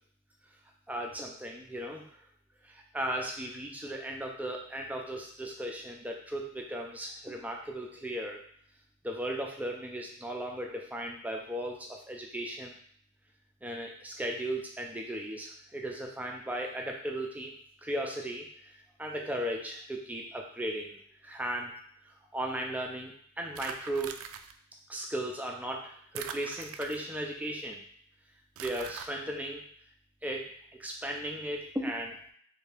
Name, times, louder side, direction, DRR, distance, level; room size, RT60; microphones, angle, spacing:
voice 1, 0.9-2.0 2.6-8.4 9.0-12.7 13.6-18.4 19.0-21.7 22.3-24.2 24.9-27.8 28.6-29.7 30.2-30.5 30.8-32.2, right 1 dB, 5° right, 0 dB, 0.4 m, -36 dB
sound 1, 23.6-24.5 26.2-27.3 28.6-29.1, right 8 dB, 85° right, 0.3 m, -42 dB
3.3 x 2.7 x 3.4 m, 0.63 s
head